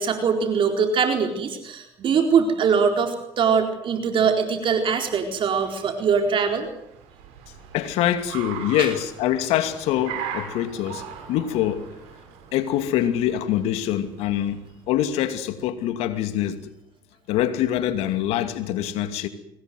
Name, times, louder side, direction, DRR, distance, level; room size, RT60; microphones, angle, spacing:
voice 1, 0.0-6.7 8.8-8.9, right 6 dB, 50° right, 4.3 m, -22 dB
Car, 4.7-15.0, right 8 dB, 75° right, 6.4 m, -40 dB
voice 2, 7.7-11.9 12.5-16.6 17.3-19.3, left 11 dB, 70° left, 2.5 m, -24 dB
25.0 x 19.5 x 7.9 m
hypercardioid pair, 70°, 11 cm